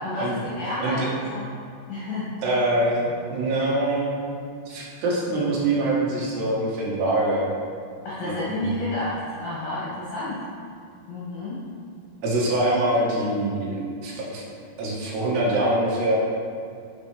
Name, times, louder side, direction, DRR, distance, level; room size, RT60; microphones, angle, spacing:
voice 1, 0.0-1.5 1.9-2.3 8.0-10.5 11.1-11.6, left 2 dB, 60° left, -9 dB, 3.1 m, -30 dB
voice 2, 2.4-4.4 4.7-7.5 8.2-8.7 12.2-14.5 14.8-16.2, right 1 dB, 65° right, -5 dB, 3.3 m, -24 dB
11.0 x 7.3 x 3.4 m, 2.3 s
omnidirectional pair, 5.6 m